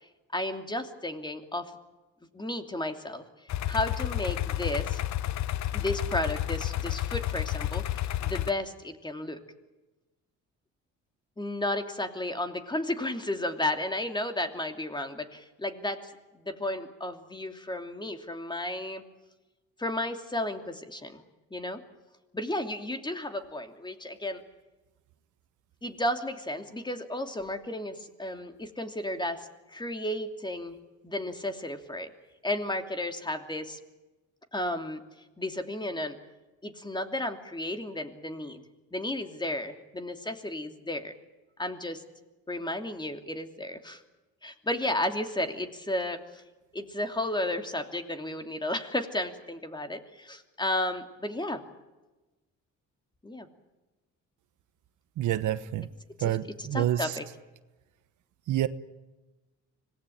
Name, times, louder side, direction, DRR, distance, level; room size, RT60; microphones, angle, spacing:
voice 1, 0.3-1.7 2.3-3.2 3.7-5.0 5.7-9.4 11.4-16.1 16.4-19.0 19.8-21.2 21.5-21.8 22.3-24.4 25.8-30.8 31.0-32.1 32.4-33.8 34.5-35.0 35.4-36.2 36.6-38.6 38.9-41.1 41.6-42.0 42.5-44.0 44.4-46.4 46.7-51.6 53.2-53.5 56.2-56.3 56.6-57.2, left 1 dB, 15° left, 6 dB, 2.8 m, -33 dB
sound 1, 3.5-8.5, left 13 dB, 65° left, 0.8 m, -31 dB
voice 2, 55.2-55.9 56.2-57.1 58.5-58.7, right 12 dB, 80° right, 13 dB, 1.2 m, -28 dB
25.5 x 19.0 x 8.8 m, 1.1 s
cardioid pair, 90°, 30 cm